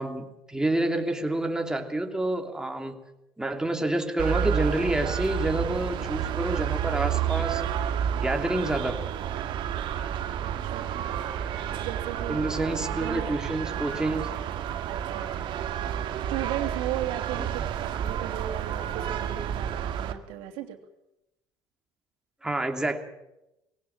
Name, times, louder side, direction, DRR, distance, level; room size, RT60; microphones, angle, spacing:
voice 1, 0.0-3.0 3.4-7.6 8.2-9.1 12.3-14.3 22.4-23.0, right 1 dB, 5° right, 4 dB, 2.9 m, -28 dB
sound 1, 4.2-20.1, right 9 dB, 60° right, 1.9 m, -30 dB
voice 2, 10.4-11.0 11.7-12.5 12.9-13.3 13.9-14.2 14.9-15.5 16.3-20.8, right 12 dB, 80° right, 5 dB, 3.0 m, -36 dB
22.0 x 17.5 x 7.6 m, 0.90 s
supercardioid pair, 90°, 9 cm